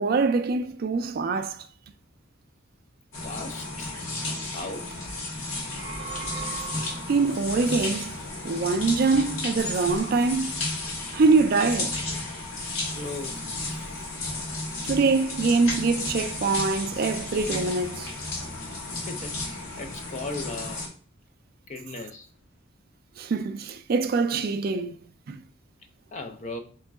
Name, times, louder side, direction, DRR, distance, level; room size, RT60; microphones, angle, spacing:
voice 1, 0.0-1.7 7.1-8.2 8.4-10.6 11.1-12.0 14.8-18.1 23.2-25.0 25.3-25.4, right 4 dB, 45° right, 0.3 m, -24 dB
sound 1, 3.1-20.9, left 2 dB, 90° left, 1.1 m, -33 dB
voice 2, 3.2-3.9 4.5-4.9 12.9-13.4 19.1-20.8 21.7-22.3 26.1-26.6, left 2 dB, 35° left, 0.4 m, -37 dB
sound 2, 5.6-7.4, right 5 dB, 25° right, 0.7 m, -38 dB
3.7 x 3.1 x 3.5 m
head